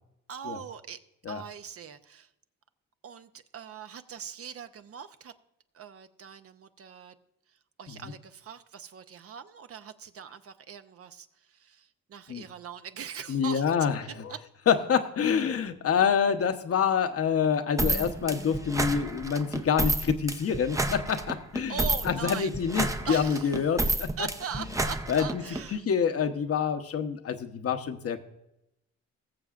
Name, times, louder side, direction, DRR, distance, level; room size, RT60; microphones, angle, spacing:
voice 1, 0.3-1.0 1.3-2.3 3.0-5.3 5.7-7.1 7.8-11.3 11.6-11.8 12.1-13.6 14.3-14.4 21.7-22.5 23.1-23.5 24.2-25.8, right 7 dB, 50° right, 10 dB, 0.7 m, -40 dB
voice 2, 13.3-14.3 14.7-24.3 24.5-24.6 25.1-25.4 25.7-28.2, left 7 dB, 50° left, 8 dB, 0.9 m, -27 dB
sound 1, 17.8-25.6, right 2 dB, 10° right, 0.6 m, -30 dB
20.5 x 7.0 x 2.5 m, 0.86 s
cardioid pair, 90°, 30 cm